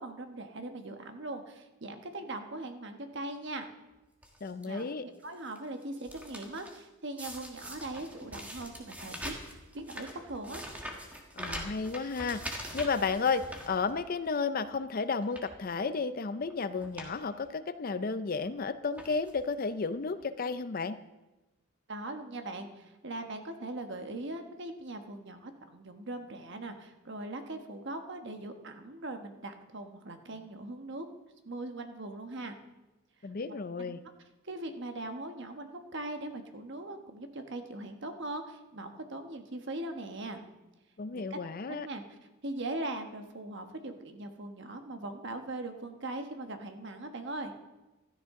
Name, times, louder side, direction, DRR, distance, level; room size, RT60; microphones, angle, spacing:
voice 1, 0.0-3.7 4.6-9.3 9.7-10.6 21.9-31.1 31.4-32.5 33.8-33.9 34.4-40.4 41.1-41.4 41.7-42.0 42.4-47.5, right 2 dB, 60° right, 6 dB, 1.2 m, -40 dB
sound 1, 4.2-4.6 5.2-5.6 5.8-6.8 7.2-14.3 14.7-14.8 15.2-15.6 16.4-16.5 16.8-17.1 17.4-17.5 18.4-18.6 19.0-19.5 20.2-20.3 20.5-20.6, equal, 5° right, 1.5 m, -43 dB
voice 2, 4.4-5.1 11.3-21.0 33.2-34.0 41.0-41.9, left 4 dB, 45° left, 13 dB, 0.5 m, -33 dB
15.5 x 13.0 x 3.7 m, 1.1 s
head